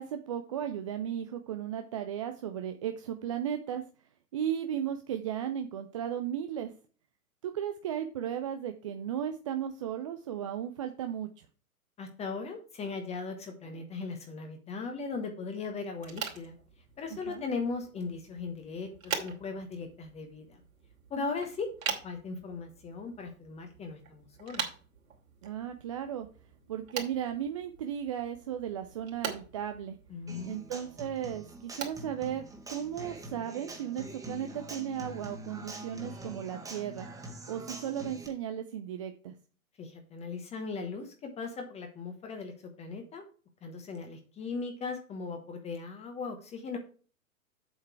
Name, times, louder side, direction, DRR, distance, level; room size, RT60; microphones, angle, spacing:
voice 1, 0.0-3.8 4.3-6.7 7.4-11.3 17.3-17.4 21.2-21.3 25.4-26.3 26.7-30.0 30.5-32.4 32.7-37.1 37.5-39.3, right 9 dB, 25° right, 6 dB, 0.4 m, -35 dB
voice 2, 12.0-16.6 17.0-20.6 21.1-21.7 22.0-24.6 30.1-30.7 39.8-43.2 43.6-46.8, left 4 dB, 15° left, 5 dB, 1.1 m, -38 dB
sound 1, 15.9-33.2, right 6 dB, 65° right, 2.9 m, -43 dB
Human voice / Acoustic guitar, 30.3-38.3, right 1 dB, 10° right, 1.6 m, -45 dB
7.9 x 6.5 x 4.6 m, 0.38 s
figure-of-eight pair, 115°, 43 cm